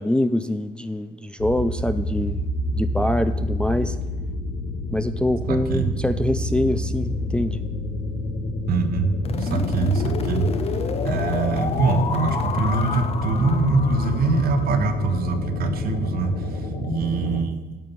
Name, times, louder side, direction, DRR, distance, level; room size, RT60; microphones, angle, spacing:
voice 1, 0.0-2.4 2.7-4.0 4.9-7.6, left 1 dB, 5° left, 10 dB, 0.4 m, -24 dB
sound 1, 1.4-17.4, left 1 dB, 85° left, 1.5 m, -28 dB
voice 2, 5.5-5.9 8.7-10.5 11.0-17.8, right 3 dB, 65° right, 8 dB, 1.2 m, -23 dB
sound 2, 9.2-15.2, left 6 dB, 35° left, 0.7 m, -30 dB
9.3 x 5.7 x 6.9 m, 1.1 s
cardioid pair, 110°, 17 cm